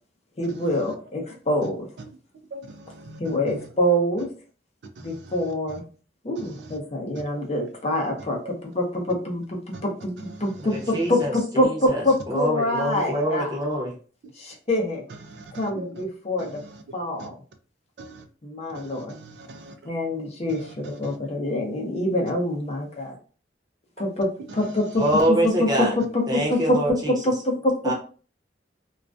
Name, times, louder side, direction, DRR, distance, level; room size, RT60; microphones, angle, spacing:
voice 1, 0.4-1.9 3.2-4.3 5.0-5.8 6.2-10.1 10.4-13.5 14.4-15.0 15.5-16.5 16.9-17.4 18.4-19.1 19.8-23.2 24.0-25.0 25.3-26.8 27.1-27.9, left 1 dB, 35° left, 0.6 m, -25 dB
voice 2, 2.5-3.6 5.0-5.4 6.4-6.8 9.7-9.9 10.2-10.8 15.2-16.0 16.4-17.3 18.0-18.2 18.7-19.7 20.5-21.2 24.6-25.3, right 2 dB, 65° right, 0.3 m, -42 dB
voice 3, 10.6-13.9 25.0-25.9 26.3-27.1 27.8-27.9, right 1 dB, 20° right, 0.7 m, -25 dB
2.3 x 2.2 x 2.4 m
head